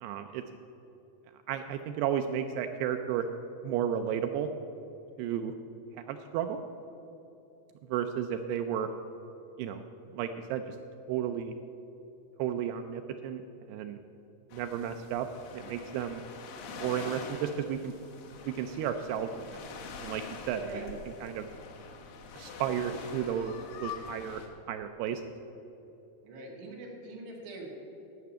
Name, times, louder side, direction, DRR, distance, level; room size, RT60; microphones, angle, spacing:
voice 1, 0.0-0.4 1.5-3.3 3.6-4.5 5.2-5.5 6.1-6.6 7.9-8.9 9.6-9.8 10.1-10.8 11.1-11.5 12.4-13.4 13.7-14.0 14.5-15.3 15.5-16.2 16.8-17.9 18.5-19.3 20.0-21.5 22.4-24.4 24.7-25.2, right 9 dB, 90° right, 6 dB, 2.3 m, -33 dB
sound 1, 14.5-24.5, left 5 dB, 65° left, 2.4 m, -45 dB
voice 2, 26.2-27.8, right 2 dB, 70° right, -1 dB, 3.8 m, -43 dB
13.0 x 5.8 x 8.5 m, 2.9 s
omnidirectional pair, 5.1 m